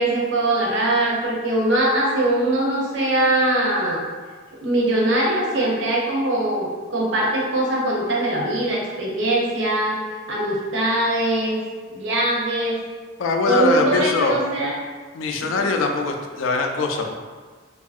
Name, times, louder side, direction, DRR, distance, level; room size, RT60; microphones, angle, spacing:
voice 1, 0.0-4.0 4.6-10.0 10.3-11.6 11.9-12.8 13.5-14.7 15.6-15.7, right 1 dB, 70° right, -3 dB, 0.6 m, -21 dB
voice 2, 13.2-14.4 15.1-17.1, left 4 dB, 90° left, 3 dB, 0.3 m, -22 dB
2.7 x 2.4 x 2.4 m, 1.5 s
head